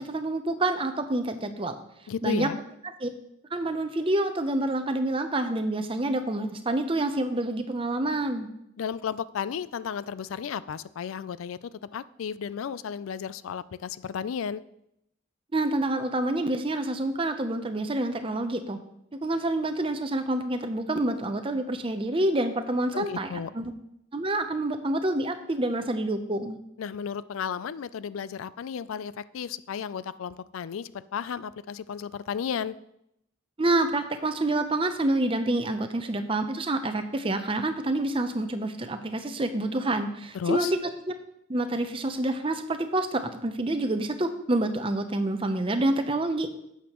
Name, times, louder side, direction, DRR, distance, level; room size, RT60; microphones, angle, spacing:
voice 1, 0.0-1.8 2.2-2.5 3.0-3.1 3.5-8.5 15.5-18.8 19.2-23.3 23.5-23.7 24.1-26.6 33.6-40.7 41.5-46.5, right 2 dB, 25° right, 8 dB, 0.6 m, -27 dB
voice 2, 2.1-2.6 8.8-14.6 22.9-23.5 26.8-32.8 40.3-40.7, left 7 dB, 80° left, 17 dB, 0.4 m, -33 dB
11.0 x 8.1 x 3.0 m, 0.79 s
head